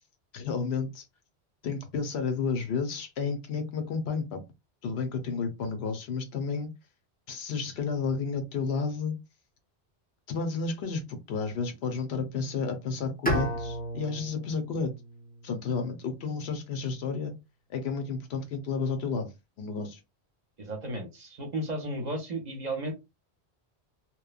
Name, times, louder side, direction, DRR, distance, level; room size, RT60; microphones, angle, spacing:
voice 1, 0.3-1.0 1.6-4.4 4.8-6.7 7.3-9.1 10.3-14.9 15.4-17.3 17.7-19.3 19.6-20.0, left 5 dB, 75° left, 0.9 m, -31 dB
Bowed string instrument, 13.3-16.3, equal, 10° left, 0.5 m, -34 dB
voice 2, 20.6-22.9, right 1 dB, 45° right, 0.7 m, -34 dB
2.9 x 2.1 x 2.3 m
omnidirectional pair, 1.1 m